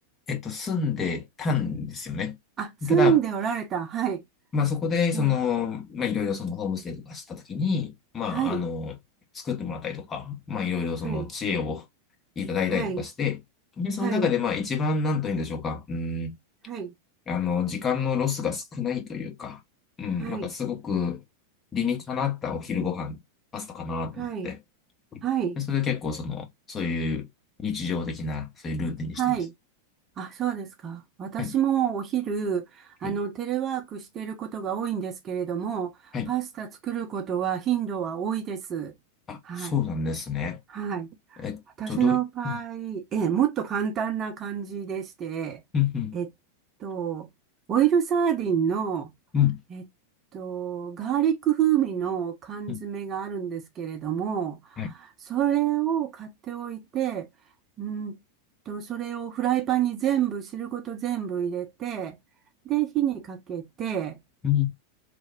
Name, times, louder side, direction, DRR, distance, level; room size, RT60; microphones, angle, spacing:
voice 1, 0.3-2.3 2.8-3.2 4.5-9.0 9.3-11.8 12.4-13.4 13.8-16.4 17.3-19.6 20.0-21.2 21.7-23.2 23.5-24.6 25.1-25.2 25.6-27.3 27.6-29.4 31.4-31.5 33.0-33.1 36.1-36.3 39.3-40.6 41.4-41.6 41.9-42.2 42.4-42.6 45.7-46.2 49.3-49.6 52.7-52.8 54.8-54.9 64.4-64.7, left 6 dB, 20° left, 0.9 m, -28 dB
voice 2, 2.6-4.2 5.1-5.4 8.3-8.6 11.0-11.3 12.7-13.0 14.0-14.3 16.7-16.9 20.2-20.5 24.2-24.5 25.2-25.6 29.2-29.5 30.2-38.9 39.4-39.8 40.7-41.4 41.8-45.6 46.1-46.3 46.8-47.3 47.7-49.1 49.7-49.8 50.3-54.9 55.3-57.3 57.8-58.2 58.7-62.2 62.6-64.2, right 9 dB, 25° right, 0.7 m, -28 dB
3.2 x 2.1 x 3.4 m
figure-of-eight pair, 90°, 0 cm